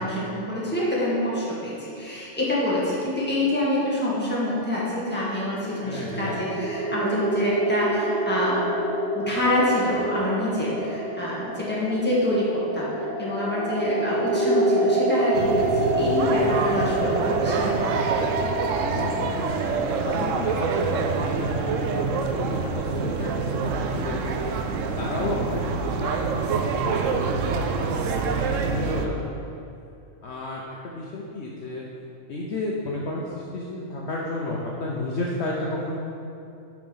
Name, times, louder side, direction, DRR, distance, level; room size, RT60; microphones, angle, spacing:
voice 1, 0.0-8.5 9.1-12.9 13.2-18.3, left 1 dB, 10° left, -8 dB, 1.8 m, -26 dB
sound 1, 5.1-21.9, right 1 dB, 35° right, 1.1 m, -27 dB
voice 2, 5.8-6.4 18.9-19.6 20.1-24.5 25.0-29.1 30.2-31.8 32.3-36.0, left 2 dB, 60° left, -3 dB, 1.0 m, -32 dB
sound 2, 15.3-29.1, right 5 dB, 75° right, 0.9 m, -26 dB
7.4 x 5.3 x 5.5 m, 2.7 s
omnidirectional pair, 1.4 m